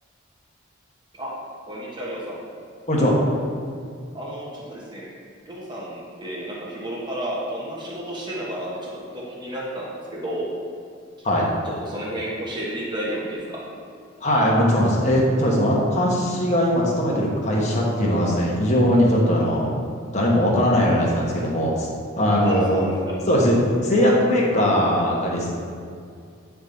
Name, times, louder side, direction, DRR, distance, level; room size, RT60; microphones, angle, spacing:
voice 1, 1.7-2.4 4.1-5.1 5.5-10.5 11.6-13.7 22.4-23.1, right 1 dB, 20° right, -6 dB, 1.2 m, -32 dB
voice 2, 14.2-19.8 20.1-21.9 22.2-22.9 23.3-23.6 23.8-25.6, equal, 35° left, -3 dB, 1.1 m, -20 dB
9.1 x 3.6 x 4.0 m, 2.3 s
head